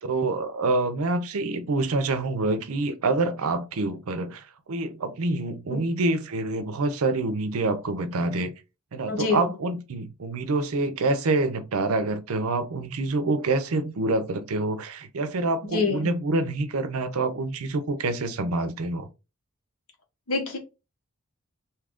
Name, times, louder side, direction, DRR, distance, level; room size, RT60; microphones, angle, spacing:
voice 1, 0.0-8.5 8.9-19.1, right 2 dB, 80° right, 0.6 m, -26 dB
voice 2, 9.1-9.5 15.7-16.1 20.3-20.6, left 4 dB, 75° left, 1.0 m, -26 dB
2.8 x 2.4 x 3.5 m
head